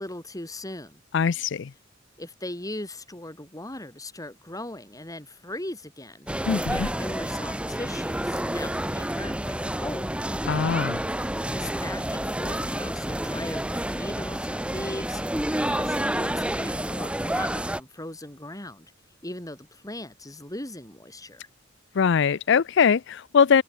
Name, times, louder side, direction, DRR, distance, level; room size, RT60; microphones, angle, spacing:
voice 1, 0.0-1.0 2.2-10.2 11.5-15.2 15.6-18.9 19.2-21.5, left 1 dB, 20° left, 7.3 m, -39 dB
voice 2, 1.1-1.7 6.5-6.9 10.5-11.0 21.9-23.6, left 6 dB, 65° left, 0.5 m, -22 dB
sound 1, 6.3-17.8, right 1 dB, 5° right, 1.5 m, -29 dB
head